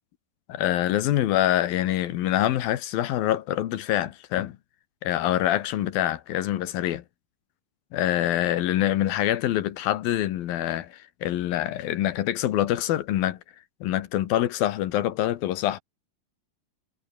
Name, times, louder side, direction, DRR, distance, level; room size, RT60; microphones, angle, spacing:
voice 1, 0.5-4.6 5.0-7.0 7.9-13.4 13.8-15.8, left 13 dB, 85° left, 3.1 m, -25 dB
omnidirectional pair, 4.1 m